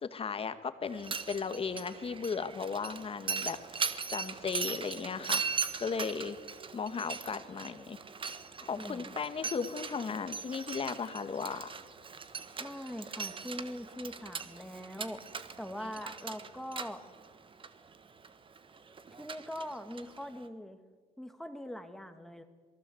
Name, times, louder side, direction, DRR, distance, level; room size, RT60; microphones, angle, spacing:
voice 1, 0.0-5.4 5.8-6.4 6.7-8.0 8.6-11.8, left 5 dB, 35° left, 10 dB, 1.9 m, -36 dB
Mechanisms, 0.9-20.5, right 5 dB, 30° right, 1.4 m, -40 dB
voice 2, 8.8-9.1 12.6-15.2 15.6-17.0 19.2-20.8 21.2-22.4, equal, ahead, 7 dB, 2.2 m, -42 dB
27.0 x 19.0 x 8.0 m, 1.5 s
cardioid pair, 110°, 17 cm